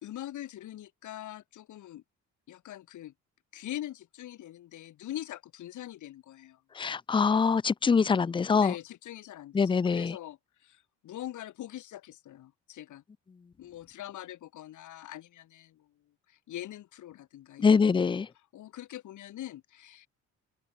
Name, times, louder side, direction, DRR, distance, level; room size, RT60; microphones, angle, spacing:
voice 1, 0.0-2.0 2.5-3.1 3.5-6.6 8.5-13.0 13.6-15.9 16.3-17.8 18.3-20.1, left 13 dB, 75° left, 2.7 m, -43 dB
voice 2, 6.8-8.7 9.5-10.2 17.6-18.3, left 5 dB, 15° left, 0.4 m, -24 dB
open air
cardioid pair, 90°, 30 cm